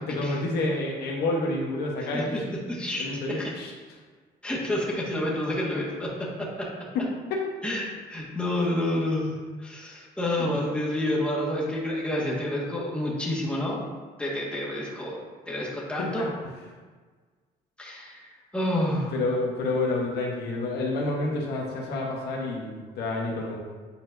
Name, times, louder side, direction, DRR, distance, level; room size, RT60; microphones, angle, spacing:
voice 1, 0.1-2.3 3.0-3.7 6.9-7.0 7.3-7.4 10.4-10.5 16.0-16.3 19.1-23.6, left 2 dB, 75° left, -1 dB, 1.1 m, -28 dB
voice 2, 2.0-2.4 2.7-3.1 3.4-3.5 4.4-6.7 7.6-13.8 14.2-16.2 17.8-19.1, left 1 dB, 5° left, -5 dB, 1.6 m, -29 dB
8.4 x 4.3 x 2.6 m, 1.4 s
cardioid pair, 110°, 17 cm